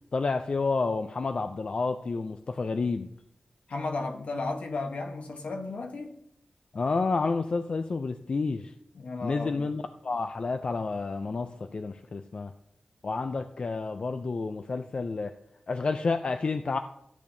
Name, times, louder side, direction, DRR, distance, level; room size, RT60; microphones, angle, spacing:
voice 1, 0.1-3.1 6.7-8.7 9.2-12.5 13.0-15.3 15.7-16.8, left 4 dB, 50° left, 0.4 m, -30 dB
voice 2, 3.7-6.1 8.9-9.7, left 3 dB, 75° left, 1.1 m, -34 dB
13.5 x 8.5 x 2.7 m
wide cardioid pair, 115°, 2 cm